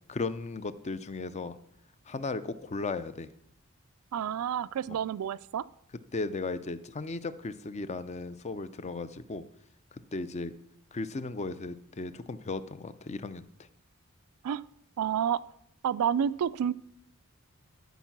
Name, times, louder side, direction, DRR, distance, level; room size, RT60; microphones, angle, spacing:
voice 1, 0.1-1.6 2.1-3.3 4.9-5.0 6.1-9.4 9.9-10.5 10.9-13.4, left 3 dB, 30° left, 13 dB, 0.4 m, -36 dB
voice 2, 4.1-5.6 14.4-14.6 15.0-15.4 15.8-16.7, right 8 dB, 90° right, 18 dB, 0.3 m, -29 dB
13.0 x 4.6 x 5.9 m, 0.76 s
head